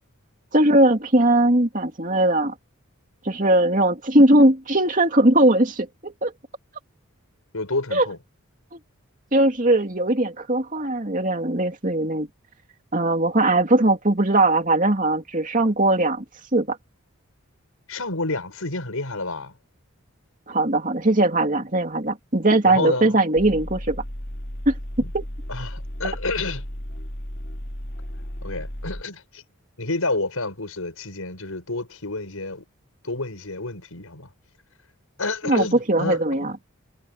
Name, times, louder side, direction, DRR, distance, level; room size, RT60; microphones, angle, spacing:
voice 1, 0.5-2.5 3.2-6.3 7.9-8.1 9.3-12.3 12.9-16.2 16.5-16.8 20.5-24.0 24.7-24.8 25.1-25.2 35.4-36.5, right 1 dB, 35° right, 2.6 m, -19 dB
voice 2, 7.5-8.2 17.9-19.5 22.7-23.2 25.0-25.1 25.5-26.7 28.4-29.4 29.8-32.6 33.0-34.3 35.2-36.5, left 2 dB, 80° left, 5.3 m, -29 dB
sound 1, 23.4-29.0, equal, 50° left, 4.1 m, -34 dB
head